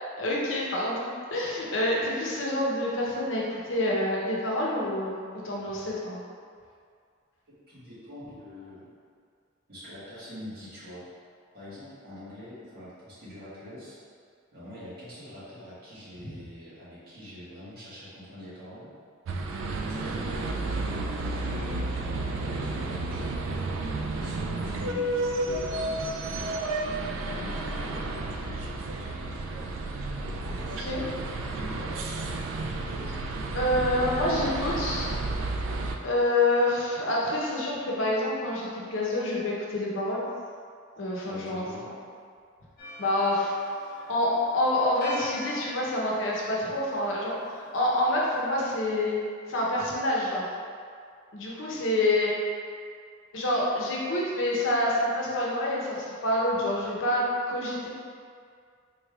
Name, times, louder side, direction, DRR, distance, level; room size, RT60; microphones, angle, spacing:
voice 1, 0.0-5.2 5.4-6.2 16.2-16.3 30.8-31.0 33.1-33.2 33.5-35.1 36.0-40.2 41.0-41.6 43.0-43.5 44.1-47.3 47.7-49.2 49.5-50.5 51.3-52.3 53.3-57.9, left 1 dB, 75° left, -4 dB, 0.8 m, -27 dB
voice 2, 7.5-8.9 9.7-11.0 11.5-14.0 14.5-18.9 19.3-21.0 21.4-23.3 24.1-28.8 30.1-30.9 31.5-31.9 41.3-41.8, left 1 dB, 50° right, -11 dB, 1.4 m, -44 dB
sound 1, 19.3-36.0, right 2 dB, 80° right, 0.3 m, -32 dB
Church bell, 42.8-48.5, left 1 dB, 45° left, 1.0 m, -44 dB
4.1 x 3.2 x 2.3 m, 2.2 s
head